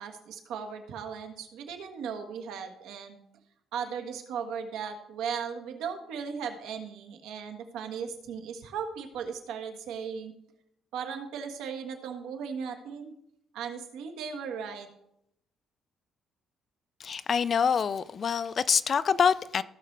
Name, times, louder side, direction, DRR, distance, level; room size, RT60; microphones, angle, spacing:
voice 1, 0.0-3.2 3.7-10.3 10.9-13.1 13.5-14.9, right 6 dB, 85° right, 1.4 m, -37 dB
voice 2, 17.0-19.6, left 6 dB, 35° left, 0.3 m, -26 dB
16.0 x 6.5 x 3.3 m
cardioid pair, 165°, 0 cm